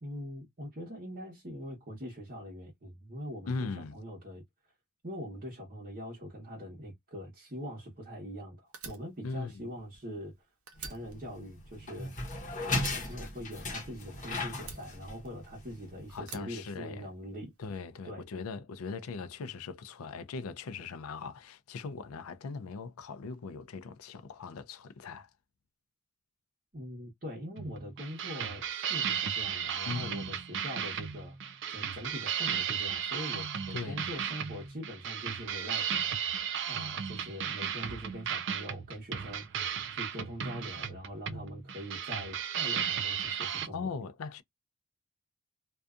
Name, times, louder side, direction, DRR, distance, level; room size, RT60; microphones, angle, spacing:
voice 1, 0.0-4.4 5.0-10.3 10.8-12.3 12.6-17.5 18.0-18.2 26.7-31.4 31.7-43.9, equal, 40° right, 1.0 m, -43 dB
voice 2, 3.5-4.0 9.2-9.6 16.1-17.0 17.6-25.3 29.9-30.3 33.7-34.1 41.3-41.6 43.7-44.4, left 4 dB, 85° left, 0.4 m, -40 dB
Fire, 8.7-10.4 10.7-12.4 12.8-14.1 14.6-15.7 16.2-17.4, right 5 dB, 80° right, 0.8 m, -47 dB
sound 1, 10.8-16.2, left 2 dB, 35° left, 0.9 m, -37 dB
sound 2, 27.6-43.7, right 8 dB, 55° right, 0.4 m, -35 dB
2.6 x 2.3 x 2.3 m
head